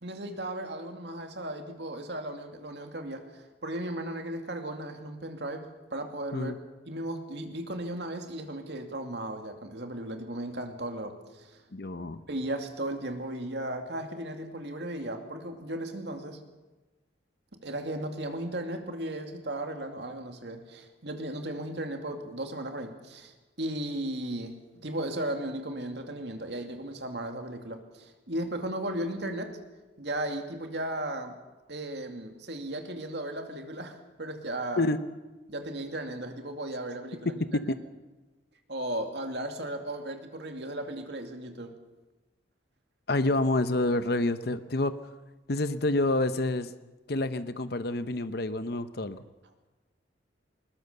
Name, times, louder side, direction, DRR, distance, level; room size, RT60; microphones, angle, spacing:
voice 1, 0.0-5.6 5.9-6.5 6.9-11.6 12.3-16.4 17.6-24.5 24.8-29.6 30.0-31.4 31.7-34.9 35.5-37.3 38.7-41.7, right 1 dB, 60° right, 5 dB, 2.5 m, -36 dB
voice 2, 11.7-12.2 34.8-35.0 37.2-37.8 43.1-44.9 45.5-46.7 47.1-49.2, left 2 dB, 55° left, 12 dB, 0.8 m, -28 dB
20.5 x 20.0 x 6.8 m, 1.1 s
head